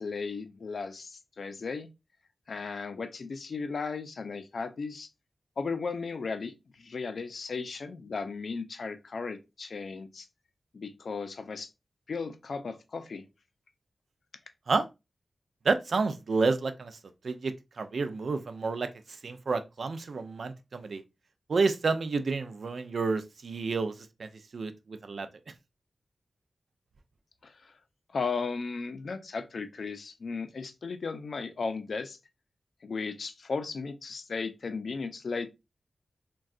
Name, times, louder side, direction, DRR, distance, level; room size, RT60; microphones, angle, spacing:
voice 1, 0.0-1.9 2.5-5.1 5.6-6.5 6.8-10.3 10.7-11.7 12.1-13.2 27.4-27.7 28.1-32.2 32.8-35.5, left 4 dB, 70° left, 0.4 m, -35 dB
voice 2, 15.6-17.0 17.2-21.0 21.5-25.3, right 4 dB, 70° right, 0.4 m, -30 dB
3.6 x 2.2 x 2.3 m
wide cardioid pair, 80°, 0 cm